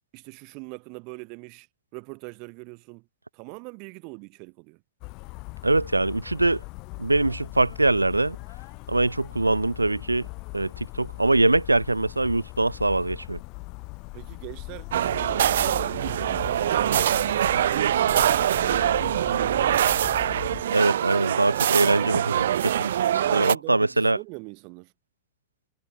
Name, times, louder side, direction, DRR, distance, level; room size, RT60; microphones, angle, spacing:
voice 1, 0.1-1.7 1.9-3.1 3.3-4.8 14.1-17.2 17.7-18.5 19.2-20.0 23.1-24.9, right 34 dB, 45° right, 4.4 m, -42 dB
sound 1, 5.0-20.6, left 28 dB, 45° left, 6.3 m, -40 dB
voice 2, 5.6-6.6 7.0-8.4 8.9-10.3 10.5-13.4 20.7-22.9 23.3-24.2, right 2 dB, 85° right, 2.2 m, -23 dB
sound 2, 14.9-23.5, right 11 dB, 60° right, 1.3 m, -23 dB
figure-of-eight pair, 90°, 0 cm